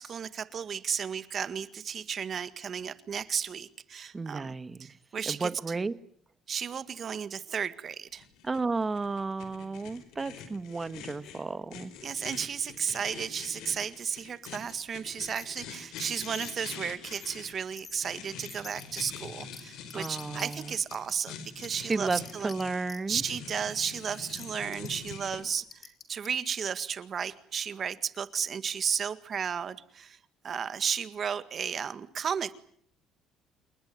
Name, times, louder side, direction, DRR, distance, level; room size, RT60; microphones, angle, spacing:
voice 1, 0.0-4.5 4.8-5.5 6.5-8.3 12.0-22.5 23.1-30.2 30.4-32.5, right 7 dB, 40° right, 1.8 m, -34 dB
voice 2, 4.1-4.9 5.3-5.9 8.4-11.9 19.9-20.7 21.8-23.2, right 3 dB, 20° right, 1.4 m, -33 dB
sound 1, 8.2-25.4, left 7 dB, 80° left, 4.6 m, -45 dB
sound 2, 15.4-15.6 16.0-16.6 17.1-17.3 17.8-18.0 18.4-19.0 19.5-19.6 19.9-21.1 21.6-22.6 22.9-23.0 23.8-23.9 24.3-24.5 24.7-25.1 25.7-26.3, left 5 dB, 30° left, 3.8 m, -46 dB
28.5 x 21.0 x 9.6 m
cardioid pair, 130°, 0 cm